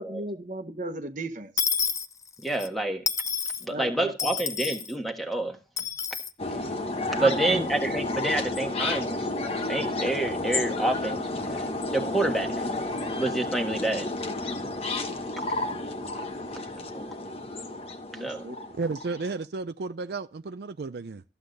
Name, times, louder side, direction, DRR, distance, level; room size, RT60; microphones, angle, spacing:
voice 1, 0.0-1.5 3.7-4.1 7.2-7.7 18.1-18.5, right 2 dB, 45° right, 1.2 m, -34 dB
Dishes pots and pans / Coin (dropping), 1.6-2.7 3.1-3.6 4.2-4.9 5.8-6.3, left 6 dB, 20° left, 0.5 m, -29 dB
voice 2, 2.4-3.0 3.6-5.6 7.1-9.3 9.6-12.8 13.1-14.1 16.9-17.1 18.1-18.5, right 2 dB, ahead, 1.4 m, -28 dB
sound 1, 6.4-19.3, left 2 dB, 35° left, 1.1 m, -31 dB
voice 3, 18.8-21.2, right 3 dB, 65° right, 0.5 m, -33 dB
14.0 x 8.1 x 4.0 m
head